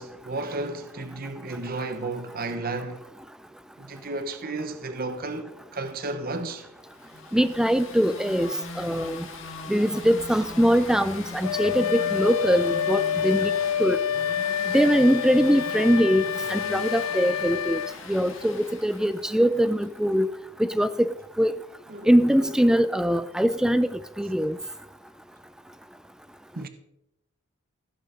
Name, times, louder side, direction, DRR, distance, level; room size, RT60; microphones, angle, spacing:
voice 1, 0.0-3.0 3.8-6.7 21.9-22.2 26.6-26.7, right 2 dB, 45° right, 1.0 m, -33 dB
sound 1, 6.9-19.8, left 3 dB, 65° left, 2.0 m, -40 dB
voice 2, 7.3-8.5 8.8-9.2 9.7-13.5 13.8-14.0 14.7-16.2 16.5-17.8 18.1-20.3 20.6-21.1 21.4-21.5 22.1-24.6, equal, 5° right, 0.4 m, -22 dB
Wind instrument woodwind instrument, 11.4-18.0, left 9 dB, 90° left, 0.5 m, -27 dB
16.0 x 8.1 x 5.1 m
head